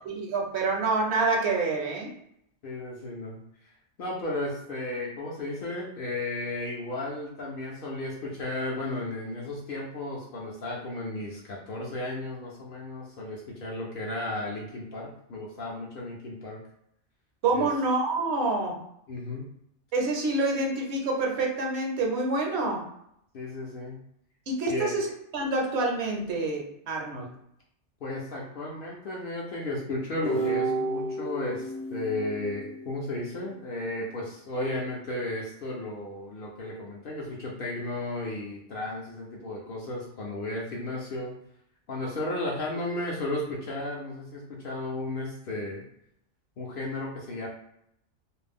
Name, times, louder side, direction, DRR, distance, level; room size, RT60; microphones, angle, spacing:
voice 1, 0.1-2.1 17.4-18.8 19.9-22.8 24.5-25.1 25.3-27.3, right 3 dB, 65° right, 0 dB, 0.8 m, -27 dB
voice 2, 2.6-3.4 4.0-16.6 17.5-17.7 19.1-19.5 23.3-24.0 24.7-25.0 27.1-27.3 28.0-41.3 41.9-45.8 46.6-47.5, left 2 dB, 60° left, -3 dB, 0.7 m, -34 dB
sound 1, 30.2-33.5, right 2 dB, 10° left, 0.4 m, -32 dB
2.4 x 2.0 x 3.4 m, 0.75 s
omnidirectional pair, 1.2 m